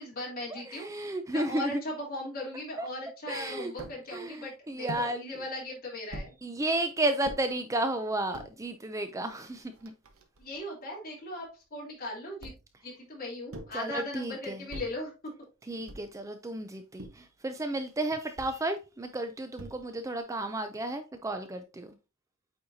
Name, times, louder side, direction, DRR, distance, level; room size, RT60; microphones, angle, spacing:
voice 1, 0.0-0.9 1.3-6.3 10.4-12.5 12.8-15.3, left 1 dB, 40° left, 3.1 m, -38 dB
voice 2, 0.5-1.8 2.8-2.9 3.3-3.7 4.1-5.3 6.4-9.9 13.7-14.6 15.7-21.9, right 1 dB, 15° right, 0.4 m, -33 dB
sound 1, 3.8-4.0 4.9-5.1 6.1-6.4 7.2-7.4 8.1-8.5 9.3-9.4 9.6-10.6 12.4-12.8 13.5-13.8 14.7-15.0 15.9-16.2 17.0-17.3 18.4-18.6 19.6-20.0, right 1 dB, 70° right, 1.1 m, -43 dB
8.5 x 4.3 x 2.7 m
head